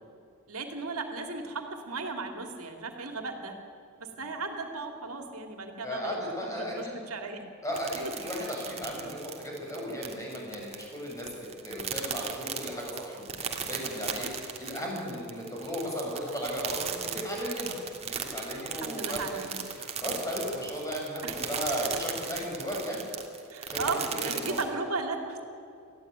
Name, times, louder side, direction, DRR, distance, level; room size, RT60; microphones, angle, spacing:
voice 1, 0.5-3.5 4.0-6.2 6.4-7.4 8.0-8.1 18.7-19.6 21.0-21.4 23.5-25.4, right 3 dB, 90° right, 5 dB, 2.4 m, -36 dB
voice 2, 5.8-7.0 7.6-11.3 11.6-14.3 14.6-19.2 19.5-23.0 23.7-24.6, equal, 15° left, -2 dB, 6.6 m, -35 dB
sound 1, 7.7-24.7, right 6 dB, 30° right, 2.1 m, -37 dB
19.5 x 14.5 x 9.4 m, 2.5 s
head